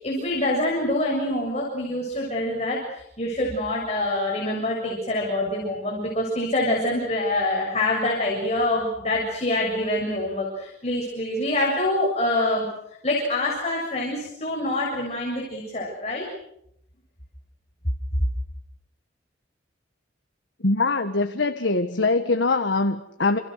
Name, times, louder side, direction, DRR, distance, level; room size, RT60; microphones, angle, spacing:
voice 1, 0.0-12.7 13.0-16.2, left 1 dB, 35° left, -2 dB, 7.2 m, -25 dB
voice 2, 20.6-23.4, left 3 dB, 75° left, 7 dB, 1.6 m, -23 dB
29.0 x 29.0 x 6.6 m, 0.76 s
head